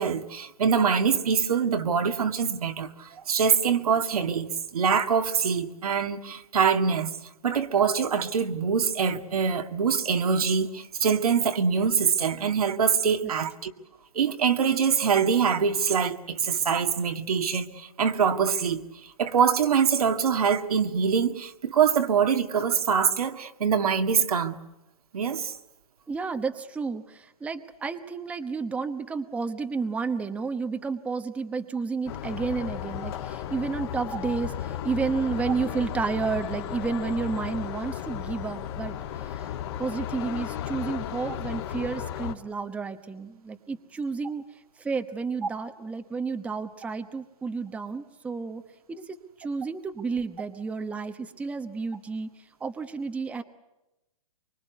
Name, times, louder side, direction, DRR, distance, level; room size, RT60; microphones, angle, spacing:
voice 1, 0.0-7.1 7.4-13.7 14.1-18.8 19.2-24.6 25.1-25.5 41.3-41.4, right 6 dB, 75° right, 2.1 m, -24 dB
voice 2, 26.1-39.0 39.2-39.5 39.8-44.4 44.8-48.6 48.9-52.3 52.6-53.4, right 4 dB, 5° right, 1.0 m, -31 dB
sound 1, 32.1-42.3, left 10 dB, 40° left, 2.2 m, -34 dB
24.5 x 23.5 x 8.3 m
hypercardioid pair, 150°, 19 cm